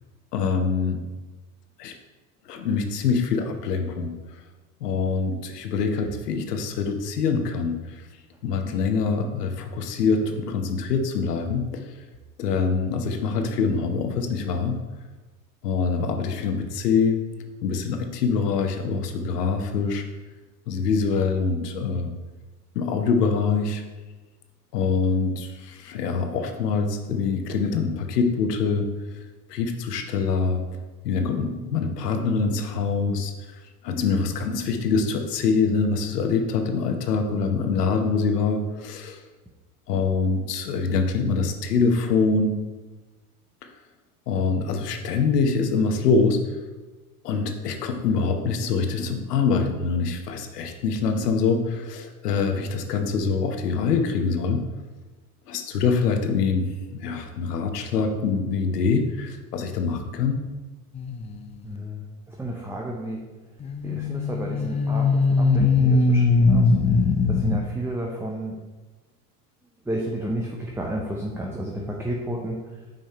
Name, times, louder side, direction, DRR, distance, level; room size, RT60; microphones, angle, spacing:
voice 1, 0.3-1.0 1.8-1.9 2.5-4.1 4.8-7.8 8.4-11.9 12.4-14.8 15.6-17.2 17.6-20.0 20.7-22.1 22.7-23.8 24.7-28.8 29.5-30.6 31.0-33.3 33.8-39.2 39.9-42.5 44.3-46.4 47.2-54.6 55.5-56.7 56.9-60.4, left 5 dB, 80° left, 5 dB, 1.0 m, -24 dB
sound 1, 60.9-61.3 63.6-67.6, left 3 dB, 15° left, 0.3 m, -20 dB
voice 2, 61.6-63.2 63.8-66.7 67.2-68.6 69.9-72.6, right 1 dB, 5° right, -1 dB, 0.8 m, -31 dB
5.7 x 5.2 x 4.2 m, 1.2 s
hypercardioid pair, 85°, 46 cm